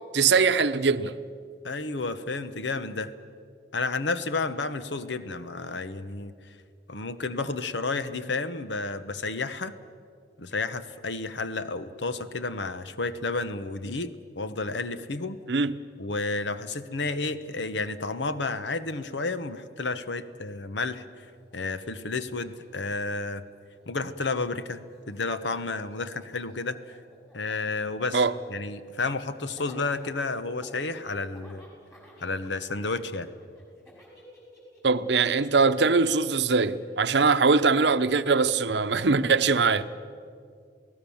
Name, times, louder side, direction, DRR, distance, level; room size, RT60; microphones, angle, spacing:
voice 1, 0.1-1.2 15.5-15.8 28.1-28.3 34.8-39.9, right 4 dB, 70° right, 0.8 m, -22 dB
voice 2, 1.6-3.1 3.7-6.3 6.9-9.7 10.4-15.4 16.0-21.0 21.5-23.4 23.9-24.8 25.1-26.8 27.3-28.2 28.5-31.6 32.2-33.3, left 3 dB, 80° left, 1.1 m, -31 dB
Laughter, 21.2-21.3 21.5-23.8 24.1-37.2, equal, 15° left, 6.0 m, -54 dB
28.5 x 18.0 x 7.2 m
head